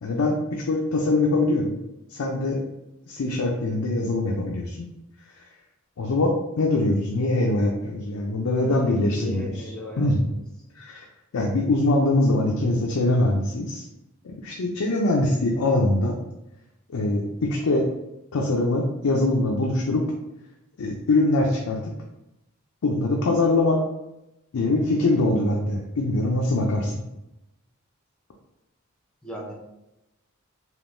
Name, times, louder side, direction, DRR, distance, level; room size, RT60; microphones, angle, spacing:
voice 1, 0.0-1.8 2.1-2.6 3.1-4.9 6.0-9.7 10.0-10.2 10.8-11.0 11.3-13.9 14.2-16.2 16.9-17.9 18.3-20.1 20.8-21.9 22.8-23.8 24.5-27.0, left 2 dB, 85° left, -1 dB, 0.5 m, -23 dB
voice 2, 8.6-10.4 29.2-29.5, equal, 5° left, -2 dB, 0.5 m, -37 dB
3.5 x 2.6 x 2.6 m, 0.90 s
head